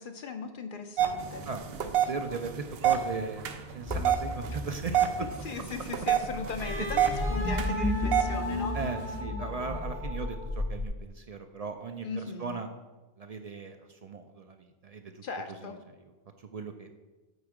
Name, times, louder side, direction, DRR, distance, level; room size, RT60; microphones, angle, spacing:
voice 1, 0.0-1.4 5.4-8.8 12.0-12.6 15.2-15.7, left 5 dB, 60° left, 6 dB, 0.7 m, -38 dB
sound 1, 1.0-9.2, right 9 dB, 75° right, 0.8 m, -30 dB
voice 2, 2.1-5.3 6.7-6.9 7.8-8.1 8.7-12.7 13.2-16.1 16.4-17.0, right 4 dB, 55° right, 6 dB, 0.4 m, -38 dB
sound 2, 3.9-10.9, left 2 dB, 25° left, 0.4 m, -33 dB
Wind instrument woodwind instrument, 6.6-10.6, equal, 80° left, 2.2 m, -39 dB
8.1 x 4.3 x 4.8 m, 1.2 s
omnidirectional pair, 1.0 m